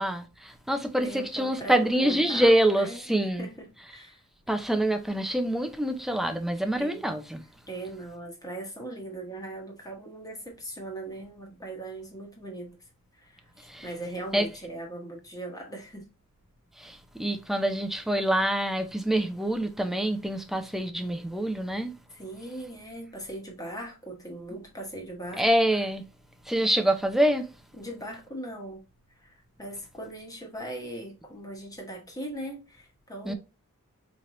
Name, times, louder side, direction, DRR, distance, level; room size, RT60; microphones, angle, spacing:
voice 1, 0.0-3.5 4.5-7.4 13.6-13.9 14.3-14.5 16.8-21.9 25.4-26.0 26.5-27.5 33.2-33.3, right 1 dB, ahead, 0.5 m, -26 dB
voice 2, 1.0-4.2 6.8-7.1 7.7-12.8 13.2-16.1 22.1-25.5 27.8-28.8 29.2-33.3, right 1 dB, 15° left, 1.0 m, -39 dB
4.4 x 3.2 x 2.5 m
head